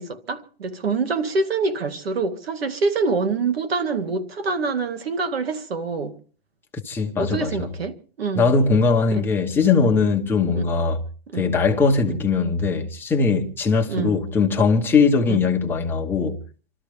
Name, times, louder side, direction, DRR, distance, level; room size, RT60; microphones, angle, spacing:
voice 1, 0.0-6.2 7.2-8.5 9.1-9.2 10.5-10.7 11.3-11.5 12.1-12.2 13.9-14.3 15.3-15.4, right 4 dB, 90° right, 2.2 m, -25 dB
voice 2, 6.8-7.7 8.3-11.0 11.3-16.4, left 4 dB, 5° left, 0.9 m, -20 dB
28.0 x 13.0 x 3.5 m
hypercardioid pair, 165°, 29 cm